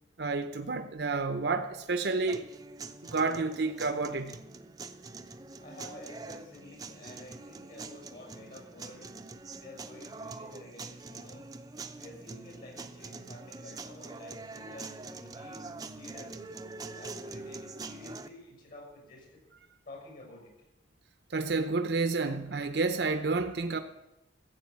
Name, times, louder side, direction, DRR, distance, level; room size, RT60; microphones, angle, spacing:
voice 1, 0.2-2.5 3.0-4.4 21.3-23.8, right 3 dB, 70° right, 0.7 m, -30 dB
sound 1, 2.3-18.3, right 3 dB, 20° right, 0.6 m, -44 dB
voice 2, 5.6-9.1 9.6-11.4 11.9-15.7 15.9-16.4 16.8-19.4 19.8-20.5, left 2 dB, 55° left, 6.5 m, -50 dB
14.5 x 7.8 x 8.6 m
head